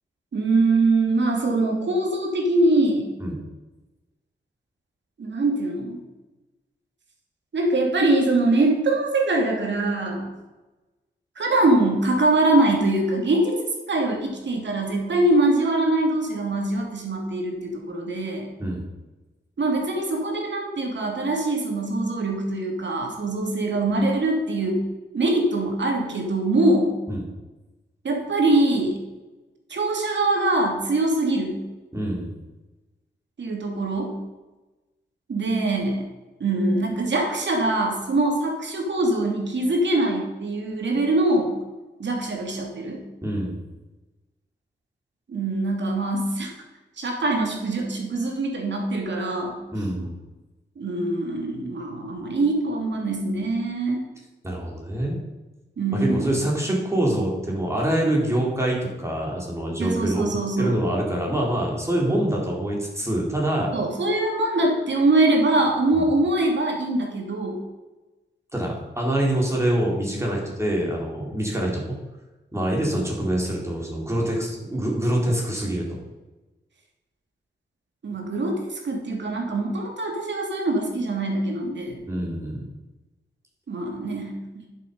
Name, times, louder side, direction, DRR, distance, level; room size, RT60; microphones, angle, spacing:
voice 1, 0.3-3.1 5.2-6.0 7.5-10.3 11.4-13.6 13.9-18.5 19.6-24.8 25.1-26.9 28.0-29.0 29.7-31.6 33.4-34.2 35.3-36.0 36.4-41.5 42.0-43.0 45.3-46.5 47.0-49.6 50.8-54.0 55.8-56.3 59.8-60.8 63.7-67.6 78.0-82.0 83.7-84.7, right 2 dB, 70° right, 1 dB, 2.8 m, -23 dB
voice 2, 31.9-32.3 43.2-43.6 49.7-50.1 54.4-55.2 55.9-60.2 60.6-63.7 65.9-66.0 68.5-71.8 72.5-75.9 82.1-82.7, right 1 dB, 15° right, -2 dB, 4.0 m, -25 dB
11.0 x 7.5 x 5.4 m, 1.1 s
wide cardioid pair, 85°, 19 cm